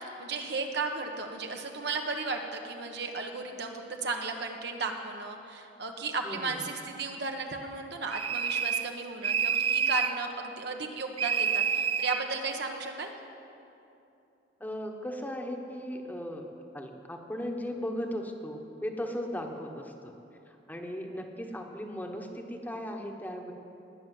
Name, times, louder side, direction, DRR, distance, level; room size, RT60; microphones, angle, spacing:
voice 1, 0.0-13.1, right 3 dB, 65° right, 3 dB, 1.4 m, -35 dB
voice 2, 6.2-6.6 14.6-16.4 16.7-20.1 20.5-23.5, equal, 10° left, 2 dB, 1.2 m, -37 dB
sound 1, 8.1-8.9 9.2-10.2 11.2-12.2, right 7 dB, 30° right, 0.4 m, -28 dB
19.0 x 7.0 x 9.4 m, 2.8 s
head